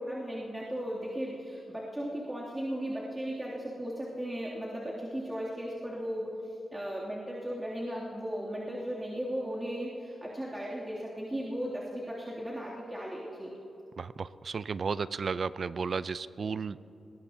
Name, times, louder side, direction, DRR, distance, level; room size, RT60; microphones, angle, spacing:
voice 1, 0.0-13.5, equal, 15° right, -6 dB, 2.6 m, -36 dB
voice 2, 14.0-16.8, right 5 dB, 60° right, 16 dB, 0.4 m, -33 dB
21.0 x 18.5 x 2.8 m, 2.8 s
cardioid pair, 55°, 0 cm